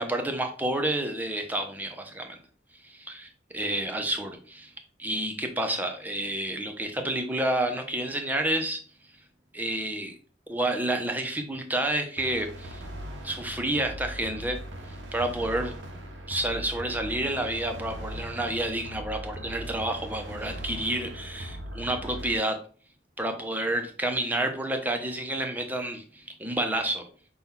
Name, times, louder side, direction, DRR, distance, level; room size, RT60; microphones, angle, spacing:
voice 1, 0.0-2.4 2.8-4.7 5.0-8.8 9.5-10.1 10.5-12.8 13.2-14.6 15.1-15.7 16.3-22.6 23.2-27.0, right 1 dB, 10° right, 5 dB, 0.5 m, -29 dB
sound 1, 12.2-22.4, equal, 90° right, 0.7 m, -39 dB
5.6 x 2.3 x 3.6 m, 0.42 s
head